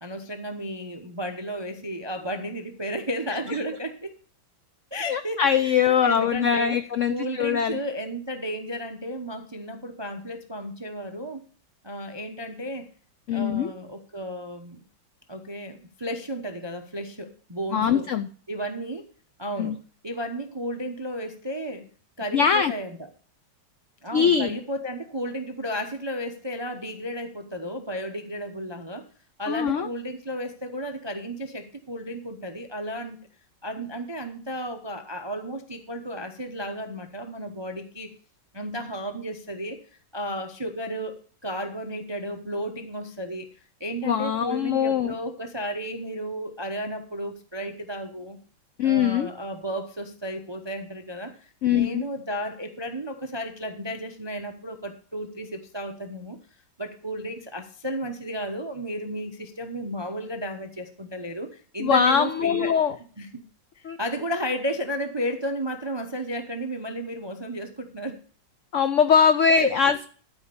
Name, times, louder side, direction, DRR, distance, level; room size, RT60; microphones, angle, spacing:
voice 1, 0.0-4.1 4.9-6.8 7.1-11.4 11.8-12.9 13.3-14.8 15.3-18.1 18.5-19.1 19.4-21.9 22.2-23.1 24.0-29.0 29.4-33.3 33.6-38.1 38.5-39.8 40.1-43.5 43.8-48.4 48.8-56.4 56.8-62.8 63.2-63.4 63.8-68.2 69.5-69.8, equal, 35° right, 7 dB, 0.4 m, -33 dB
voice 2, 5.1-7.8 13.3-13.7 17.7-18.3 19.6-19.8 22.3-22.7 24.1-24.6 29.5-29.9 44.0-45.1 48.8-49.3 51.6-52.0 61.8-63.0 63.8-64.0 68.7-70.1, left 7 dB, 75° left, 11 dB, 0.7 m, -22 dB
12.5 x 5.0 x 6.8 m, 0.43 s
omnidirectional pair, 2.0 m